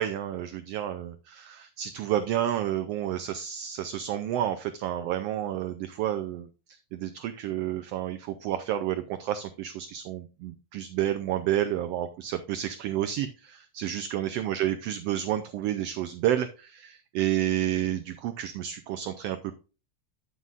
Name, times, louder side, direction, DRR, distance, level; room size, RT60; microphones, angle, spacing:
voice 1, 0.0-19.6, right 11 dB, 80° right, 9 dB, 1.4 m, -30 dB
9.6 x 7.3 x 2.4 m, 0.33 s
omnidirectional pair, 3.3 m